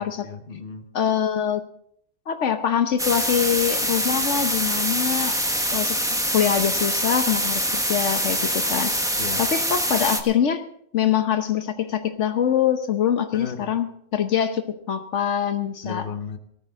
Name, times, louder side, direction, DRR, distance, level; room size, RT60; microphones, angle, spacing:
voice 1, 0.0-0.9 9.2-9.4 13.3-13.8 15.8-16.4, left 6 dB, 50° left, 1.3 m, -34 dB
voice 2, 0.9-1.6 2.3-5.4 5.7-8.9 9.4-10.6 10.9-16.1, left 9 dB, 80° left, 1.3 m, -24 dB
sound 1, 3.0-10.2, equal, 5° right, 1.1 m, -24 dB
19.0 x 13.5 x 3.6 m
omnidirectional pair, 1.2 m